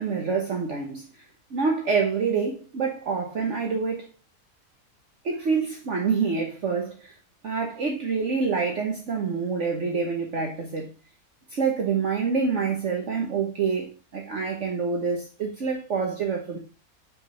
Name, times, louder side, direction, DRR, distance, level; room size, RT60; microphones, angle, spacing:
voice 1, 0.0-4.0 5.2-7.1 7.4-10.9 11.5-16.6, right 5 dB, 55° right, 1.4 m, -27 dB
6.5 x 4.8 x 5.6 m
omnidirectional pair, 1.6 m